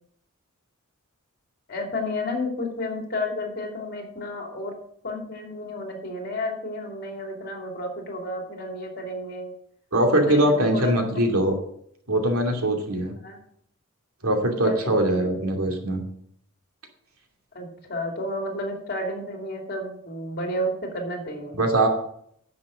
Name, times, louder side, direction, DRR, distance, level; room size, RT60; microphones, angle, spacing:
voice 1, 1.7-4.7 5.0-9.5 10.1-10.9 13.1-13.4 14.6-15.3 17.5-21.6, left 1 dB, 45° left, 2 dB, 2.9 m, -32 dB
voice 2, 9.9-11.6 12.1-13.2 14.2-16.0 21.6-21.9, right 1 dB, 90° right, 2 dB, 2.6 m, -22 dB
10.5 x 6.8 x 6.3 m, 0.67 s
head